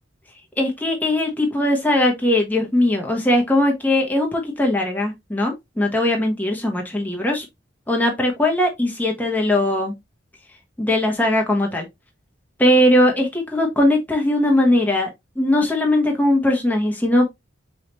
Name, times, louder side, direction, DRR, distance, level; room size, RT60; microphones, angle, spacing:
voice 1, 0.6-7.4 7.9-9.9 10.8-11.9 12.6-15.1 15.4-17.3, left 1 dB, 10° left, 1.0 m, -19 dB
4.7 x 3.3 x 2.9 m
head